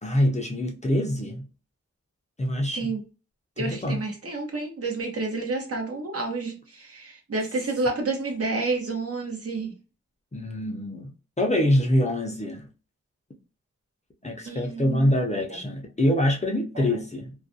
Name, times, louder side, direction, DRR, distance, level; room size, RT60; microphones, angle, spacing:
voice 1, 0.0-1.5 2.4-2.9 3.6-4.0 10.3-11.1 11.4-12.7 14.2-17.3, left 1 dB, 25° left, 0.5 m, -25 dB
voice 2, 3.6-9.7 14.4-15.1 15.5-15.6 16.7-16.8, right 3 dB, 50° right, 0.8 m, -30 dB
2.4 x 2.1 x 2.5 m
wide cardioid pair, 75°, 29 cm